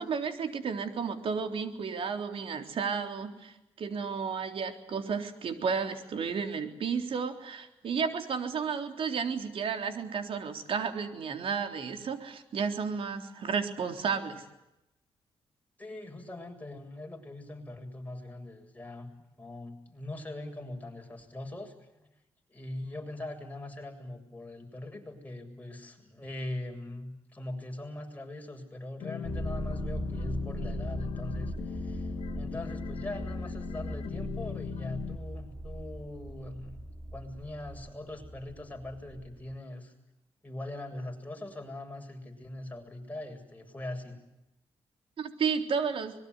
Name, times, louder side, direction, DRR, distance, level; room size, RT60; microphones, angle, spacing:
voice 1, 0.0-14.4 45.2-46.1, right 6 dB, 65° right, 6 dB, 3.7 m, -32 dB
voice 2, 15.8-19.1 19.4-21.7 22.0-22.1 22.5-36.8 37.1-39.9 40.4-44.2, left 1 dB, 15° left, 3 dB, 7.6 m, -41 dB
sound 1, 29.0-35.2, left 8 dB, 70° left, 1.6 m, -38 dB
sound 2, 29.2-39.6, right 1 dB, 25° right, 3.1 m, -39 dB
25.5 x 22.0 x 9.7 m, 0.92 s
cardioid pair, 75°, 10 cm